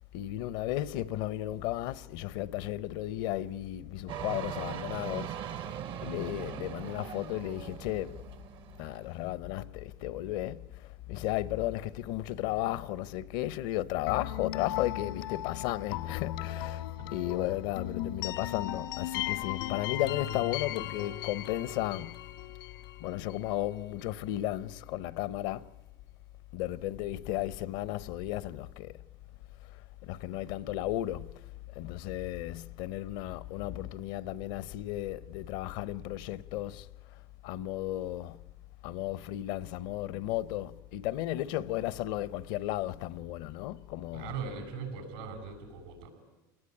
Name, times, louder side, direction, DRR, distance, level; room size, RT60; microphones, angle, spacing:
voice 1, 0.1-8.2 8.8-16.8 17.1-22.2 23.0-25.7 26.5-28.9 30.1-31.4 31.7-36.9 37.4-38.4 38.8-44.3, left 14 dB, 75° left, 0.8 m, -34 dB
sound 1, 4.1-9.4, right 10 dB, 50° right, 0.9 m, -40 dB
sound 2, 14.1-23.8, left 13 dB, 90° left, 1.7 m, -37 dB
voice 2, 44.1-46.1, right 5 dB, 85° right, 8.0 m, -40 dB
29.0 x 19.0 x 10.0 m
supercardioid pair, 100°, 11 cm